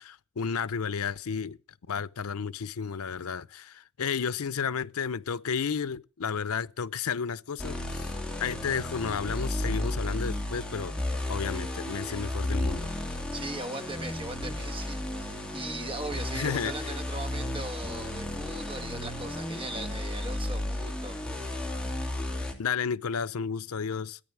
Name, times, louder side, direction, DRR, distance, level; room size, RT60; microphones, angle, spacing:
voice 1, 0.0-1.6 1.9-10.9 11.3-13.2 16.3-16.9 22.6-24.2, left 6 dB, 80° left, 0.6 m, -32 dB
sound 1, 7.6-22.5, left 1 dB, 5° left, 2.5 m, -33 dB
voice 2, 13.3-21.2, right 2 dB, 25° right, 1.5 m, -39 dB
14.0 x 9.5 x 7.2 m
head